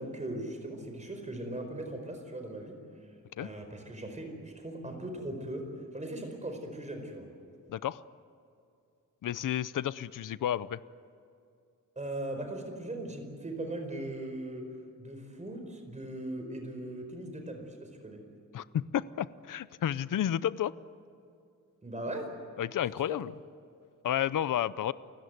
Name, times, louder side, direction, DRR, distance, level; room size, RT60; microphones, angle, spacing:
voice 1, 0.0-3.1 3.4-5.7 5.9-7.3 11.9-14.7 15.0-18.2 21.8-22.3 23.1-23.2, right 1 dB, 20° right, 5 dB, 4.7 m, -39 dB
voice 2, 7.7-8.0 9.2-10.8 18.5-20.7 22.6-23.3 24.0-24.9, left 10 dB, 75° left, 17 dB, 0.7 m, -31 dB
29.0 x 16.5 x 9.3 m, 2.5 s
wide cardioid pair, 150°, 32 cm